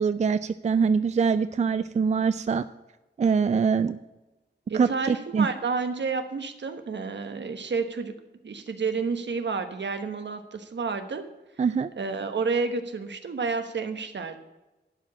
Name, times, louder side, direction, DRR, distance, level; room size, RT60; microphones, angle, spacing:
voice 1, 0.0-2.6 3.2-4.0 4.7-5.5 11.6-11.9, right 5 dB, 40° right, 13 dB, 0.4 m, -24 dB
voice 2, 4.7-8.1 8.4-11.2 12.0-14.4, right 4 dB, 75° right, 8 dB, 1.2 m, -30 dB
11.5 x 4.9 x 8.6 m, 1.0 s
wide cardioid pair, 110°, 19 cm